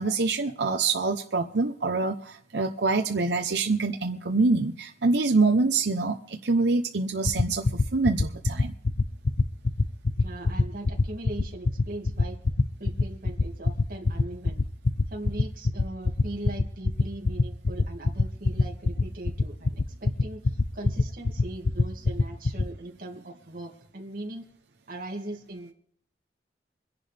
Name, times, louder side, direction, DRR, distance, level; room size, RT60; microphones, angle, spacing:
voice 1, 0.0-8.7, right 3 dB, 80° right, 3 dB, 0.9 m, -25 dB
sound 1, 7.2-22.6, left 3 dB, 75° left, 0.8 m, -22 dB
voice 2, 10.2-12.4 12.8-14.6 15.1-24.4 24.9-25.7, right 1 dB, 55° right, -1 dB, 2.4 m, -39 dB
25.5 x 10.5 x 3.5 m, 0.67 s
head